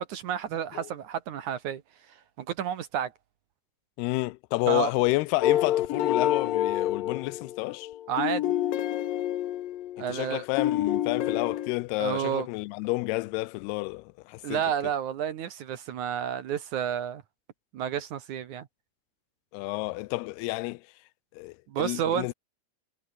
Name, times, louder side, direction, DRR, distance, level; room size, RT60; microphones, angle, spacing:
voice 1, 0.0-1.8 2.1-3.1 4.7-4.9 8.1-8.5 10.0-10.4 12.0-12.5 14.4-17.2 17.7-18.7 21.7-22.3, right 9 dB, 60° right, 2.3 m, -30 dB
voice 2, 4.0-7.9 10.0-14.6 19.5-20.8 21.3-22.3, left 22 dB, 85° left, 2.6 m, -30 dB
sound 1, 5.4-10.3 10.6-11.7, left 13 dB, 65° left, 2.8 m, -28 dB
omnidirectional pair, 4.5 m